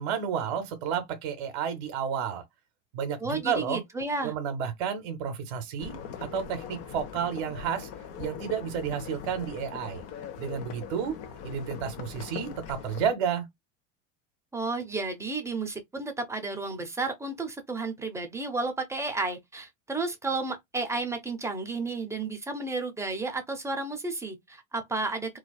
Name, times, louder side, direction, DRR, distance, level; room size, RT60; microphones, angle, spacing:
voice 1, 0.0-2.4 2.9-3.8 4.2-7.9 8.2-10.0 10.4-11.1 11.4-13.5, right 7 dB, 60° right, 0.8 m, -31 dB
voice 2, 3.2-4.3 14.5-25.4, right 3 dB, 10° right, 0.7 m, -32 dB
sound 1, 5.8-13.1, left 7 dB, 40° left, 0.8 m, -41 dB
2.5 x 2.3 x 2.2 m
hypercardioid pair, 85°, 37 cm